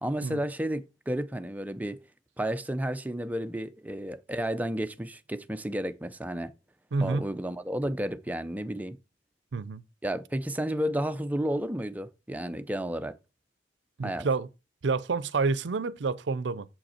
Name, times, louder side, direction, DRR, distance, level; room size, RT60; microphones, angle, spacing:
voice 1, 0.0-2.0 2.4-6.5 7.0-9.0 10.0-13.2 14.0-14.3, right 1 dB, 10° right, 0.5 m, -32 dB
voice 2, 6.9-7.3 9.5-9.8 14.0-14.5 14.8-16.7, right 4 dB, 70° right, 0.5 m, -28 dB
7.2 x 5.2 x 4.3 m
head